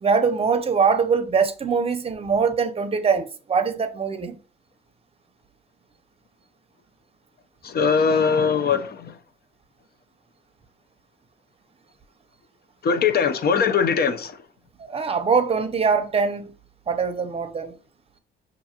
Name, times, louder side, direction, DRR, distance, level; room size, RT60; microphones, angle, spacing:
voice 1, 0.0-4.4 14.9-16.5 16.9-17.7, right 5 dB, 30° right, 0.7 m, -22 dB
voice 2, 7.6-9.2 12.8-14.4, left 6 dB, 50° left, 0.7 m, -21 dB
5.7 x 2.6 x 2.9 m
cardioid pair, 90°, 20 cm